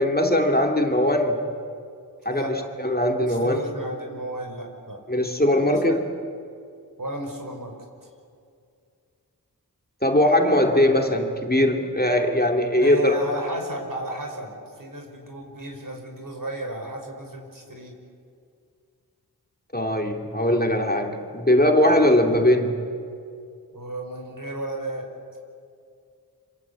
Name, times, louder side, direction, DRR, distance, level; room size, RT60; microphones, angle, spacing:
voice 1, 0.0-1.5 2.2-3.6 5.1-6.0 10.0-13.2 19.7-22.8, left 1 dB, 25° left, 3 dB, 2.6 m, -20 dB
voice 2, 3.3-5.0 5.7-6.0 7.0-7.7 12.8-18.0 23.7-25.1, right 1 dB, 55° right, 2 dB, 5.4 m, -34 dB
26.5 x 26.5 x 8.3 m, 2.3 s
wide cardioid pair, 60°, 38 cm